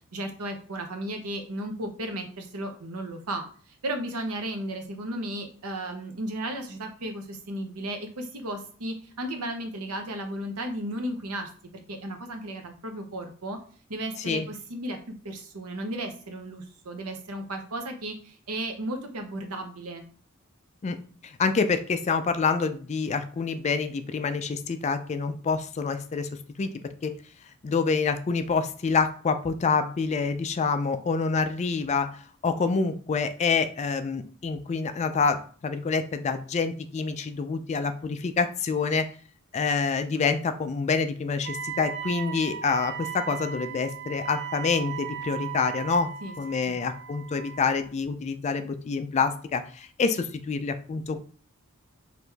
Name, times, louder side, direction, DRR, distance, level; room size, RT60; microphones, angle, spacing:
voice 1, 0.1-11.5 11.9-13.6 13.9-15.0 15.2-20.0 46.2-46.3 46.7-46.8, right 1 dB, 85° right, 5 dB, 0.8 m, -34 dB
voice 2, 21.2-26.3 26.6-26.7 27.0-27.1 27.6-39.1 39.5-46.1 46.4-51.2, left 5 dB, 30° left, 9 dB, 0.3 m, -27 dB
Wind instrument woodwind instrument, 41.4-47.9, right 9 dB, 50° right, 0.4 m, -37 dB
4.6 x 2.5 x 3.4 m, 0.43 s
head